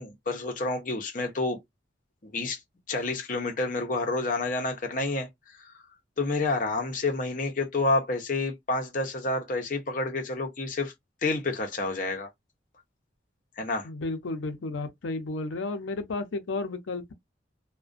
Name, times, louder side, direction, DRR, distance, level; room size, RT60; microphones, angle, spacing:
voice 1, 0.0-1.6 2.2-2.6 2.9-5.3 5.6-5.7 6.2-10.9 11.2-12.3 13.6-13.9, left 2 dB, 45° left, 0.6 m, -29 dB
voice 2, 13.8-17.1, left 3 dB, 80° left, 0.5 m, -32 dB
2.4 x 2.1 x 2.4 m
head